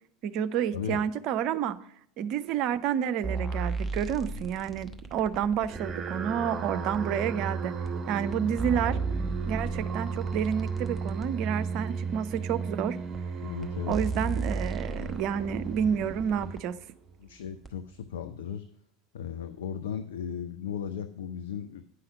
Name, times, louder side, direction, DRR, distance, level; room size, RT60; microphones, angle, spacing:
voice 1, 0.2-1.8 2.2-7.7 8.1-9.0 9.5-13.0 13.9-16.7, right 8 dB, 50° right, 12 dB, 0.6 m, -29 dB
voice 2, 0.7-1.0 13.4-14.0 17.2-18.6 19.1-21.9, left 8 dB, 70° left, 9 dB, 0.5 m, -36 dB
sound 1, 3.2-6.0 6.9-7.0 7.8-7.9 8.3-11.3 12.1-12.2 13.1-13.2 13.6-13.7 13.9-16.6 17.6-17.7, right 3 dB, 5° right, 1.1 m, -35 dB
sound 2, 5.6-17.1, right 5 dB, 30° right, 2.3 m, -35 dB
9.7 x 5.7 x 5.2 m, 0.66 s
figure-of-eight pair, 75°, 0 cm